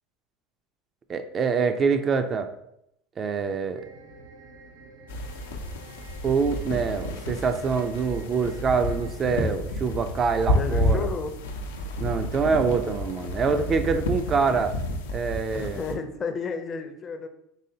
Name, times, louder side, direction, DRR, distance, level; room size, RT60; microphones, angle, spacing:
voice 1, 1.1-2.5 3.2-3.8 6.2-11.1 12.0-14.8 15.1-15.8, right 5 dB, 35° right, 8 dB, 0.4 m, -25 dB
sound 1, 3.8-9.1, right 2 dB, 90° right, 0.6 m, -48 dB
sound 2, 5.1-15.9, left 1 dB, 90° left, 0.5 m, -30 dB
sound 3, 8.0-8.2 8.8-8.9 9.4-10.4 10.9-12.0 12.4-13.4 13.7-13.9, right 2 dB, 65° right, 1.0 m, -40 dB
voice 2, 10.5-11.3 15.5-17.3, left 5 dB, 35° left, 7 dB, 0.5 m, -32 dB
4.0 x 3.1 x 2.8 m, 0.77 s
supercardioid pair, 95°, 0 cm